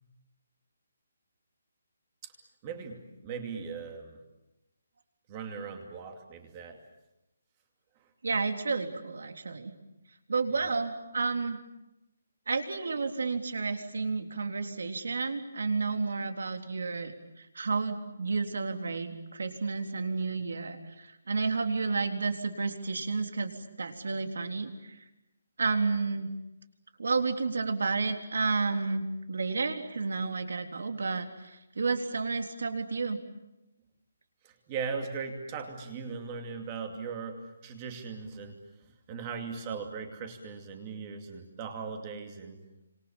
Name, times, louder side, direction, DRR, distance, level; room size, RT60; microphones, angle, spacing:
voice 1, 2.6-4.2 5.3-6.8 10.5-10.7 34.4-38.6 39.1-42.6, right 5 dB, 15° right, 5 dB, 2.5 m, -39 dB
voice 2, 8.2-9.7 10.3-11.6 12.5-17.1 17.6-23.5 23.8-25.0 25.6-26.3 27.0-33.2, right 4 dB, 65° right, 6 dB, 3.7 m, -31 dB
30.0 x 26.5 x 7.3 m, 0.94 s
hypercardioid pair, 180°, 0 cm